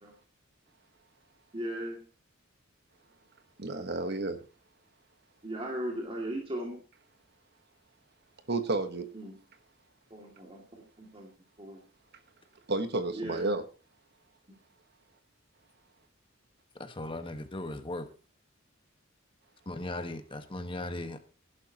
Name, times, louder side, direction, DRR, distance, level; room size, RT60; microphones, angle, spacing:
voice 1, 1.5-2.0 5.4-6.8 9.1-9.4 10.1-11.3 11.6-11.8 13.1-13.5, right 1 dB, 25° right, 2.4 m, -37 dB
voice 2, 3.6-4.4 8.5-9.0 12.7-13.6, right 2 dB, 55° right, 1.3 m, -31 dB
voice 3, 16.8-18.1 19.6-21.2, left 1 dB, 25° left, 1.4 m, -37 dB
16.5 x 11.5 x 3.0 m
head